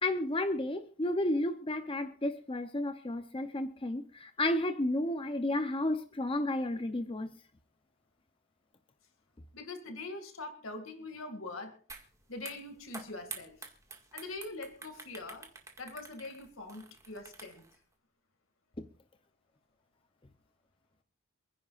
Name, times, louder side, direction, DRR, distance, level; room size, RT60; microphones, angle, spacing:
voice 1, 0.0-7.3 18.8-18.9, left 1 dB, 25° left, 0.7 m, -32 dB
voice 2, 9.5-11.8 12.3-13.6 14.1-15.5 15.8-17.6, left 2 dB, 70° left, 2.2 m, -43 dB
sound 1, 11.9-12.1 12.4-17.7, right 4 dB, 15° right, 1.9 m, -48 dB
28.0 x 10.5 x 2.5 m
head